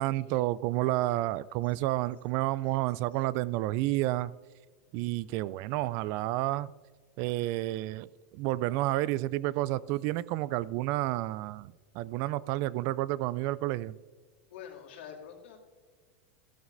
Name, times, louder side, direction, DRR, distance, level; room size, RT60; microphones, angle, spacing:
voice 1, 0.0-4.3 4.9-6.7 7.2-8.1 8.3-14.0, right 16 dB, 50° right, 20 dB, 0.3 m, -30 dB
voice 2, 14.5-15.6, left 8 dB, 75° left, 1 dB, 2.4 m, -46 dB
14.0 x 12.5 x 2.6 m, 1.5 s
hypercardioid pair, 110°, 6 cm